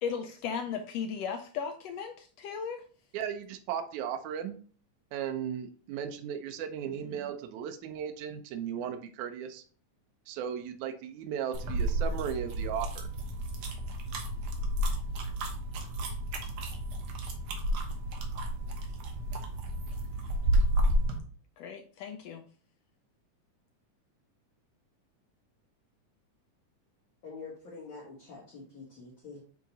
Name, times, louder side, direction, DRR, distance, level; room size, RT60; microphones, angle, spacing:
voice 1, 0.0-2.8 21.6-22.5, left 6 dB, 80° left, 6 dB, 1.5 m, -36 dB
voice 2, 3.1-4.6 5.1-9.6 10.3-13.1, right 8 dB, 80° right, 6 dB, 2.1 m, -36 dB
sound 1, 11.5-21.2, right 1 dB, 65° right, 2.0 m, -31 dB
voice 3, 27.2-29.4, left 4 dB, 50° left, -3 dB, 1.7 m, -46 dB
7.2 x 3.8 x 4.0 m, 0.42 s
omnidirectional pair, 3.4 m